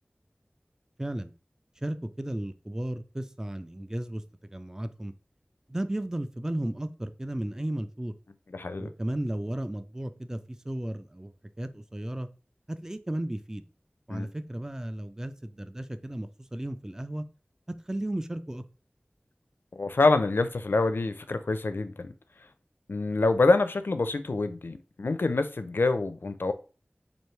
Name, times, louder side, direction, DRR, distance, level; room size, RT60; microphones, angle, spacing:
voice 1, 1.0-1.3 1.8-5.1 5.7-8.1 8.8-10.4 10.6-11.3 11.6-12.3 12.7-13.6 14.1-17.3 17.7-18.6, right 1 dB, 15° right, 0.3 m, -34 dB
voice 2, 8.5-8.9 14.1-14.3 19.7-22.1 22.9-26.5, left 3 dB, 80° left, 0.4 m, -26 dB
3.2 x 2.6 x 4.3 m
wide cardioid pair, 40°, 4 cm